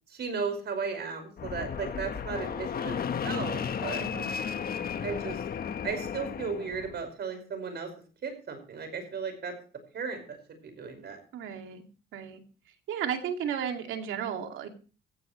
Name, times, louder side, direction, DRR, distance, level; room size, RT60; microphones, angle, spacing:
voice 1, 0.1-4.0 5.0-5.4 5.8-7.9 8.2-9.5 9.9-11.2, right 5 dB, 60° right, 7 dB, 5.4 m, -35 dB
Fixed-wing aircraft airplane, 1.4-7.0, left 7 dB, 50° left, 1.3 m, -34 dB
voice 2, 11.3-11.8 12.1-12.4 12.9-14.7, right 8 dB, 85° right, 5 dB, 2.5 m, -34 dB
16.0 x 14.5 x 3.2 m, 0.38 s
cardioid pair, 90°, 20 cm